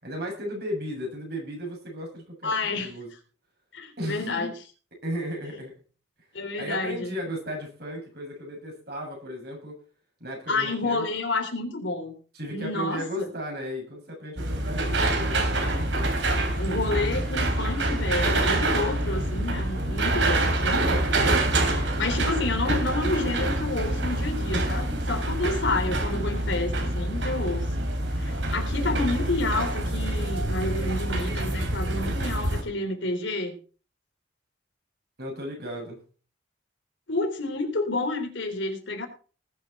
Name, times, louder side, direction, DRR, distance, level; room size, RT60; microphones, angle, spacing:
voice 1, 0.0-3.1 4.0-4.5 5.0-5.7 6.6-9.8 10.2-11.0 12.3-15.8 35.2-36.0, equal, 55° right, 0 dB, 7.1 m, -35 dB
voice 2, 2.4-2.9 3.7-4.5 6.3-7.2 10.5-12.1 12.5-13.3 16.6-21.1 22.0-27.7 28.2-33.6 37.1-39.1, left 2 dB, 80° left, 4 dB, 3.6 m, -29 dB
sound 1, 14.4-32.6, right 1 dB, 75° right, 3.3 m, -26 dB
19.5 x 7.6 x 4.3 m, 0.38 s
head